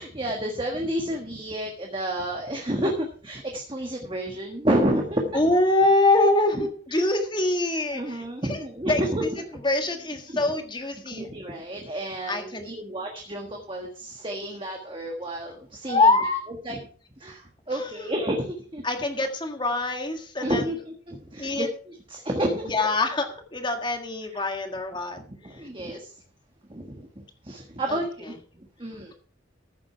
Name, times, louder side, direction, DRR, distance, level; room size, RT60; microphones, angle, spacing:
voice 1, 0.0-5.4 6.5-7.0 7.9-9.2 9.5-9.6 10.3-10.4 11.1-16.1 16.6-16.8 17.2-18.8 20.4-22.9 24.3-24.4 25.3-26.1 26.7-29.1, right 1 dB, 25° right, 1 dB, 1.5 m, -30 dB
voice 2, 5.3-9.3 9.6-11.3 12.3-12.7 15.9-16.4 17.7-18.1 18.8-20.7 21.4-21.7 22.7-25.2 25.5-25.6 27.9-28.0, left 2 dB, 25° left, 5 dB, 1.6 m, -24 dB
14.5 x 7.6 x 4.7 m, 0.44 s
head